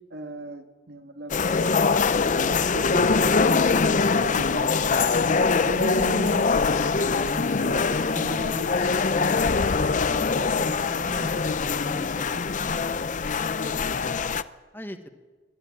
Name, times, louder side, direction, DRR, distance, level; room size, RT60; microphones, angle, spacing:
voice 1, 0.1-6.5 7.0-12.5, right 1 dB, 65° right, 5 dB, 1.8 m, -37 dB
sound 1, 1.3-14.4, left 4 dB, 45° left, 0.6 m, -23 dB
voice 2, 13.5-14.2 14.7-15.1, equal, 10° left, 7 dB, 1.4 m, -42 dB
22.0 x 13.5 x 8.8 m, 1.3 s
head